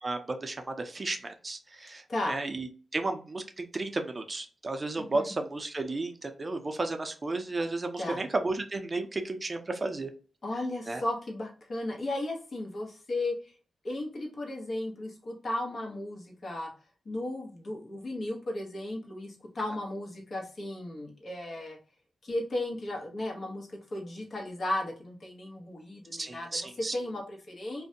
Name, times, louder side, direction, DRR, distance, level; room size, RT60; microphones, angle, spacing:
voice 1, 0.0-10.1 10.9-11.0 26.1-27.0, right 2 dB, 35° right, 6 dB, 0.5 m, -33 dB
voice 2, 5.0-5.3 8.0-8.2 10.4-13.5 13.8-16.7 17.0-21.8 22.2-27.8, left 1 dB, 60° left, 0 dB, 1.0 m, -35 dB
2.5 x 2.1 x 2.6 m, 0.38 s
cardioid pair, 60°, 0 cm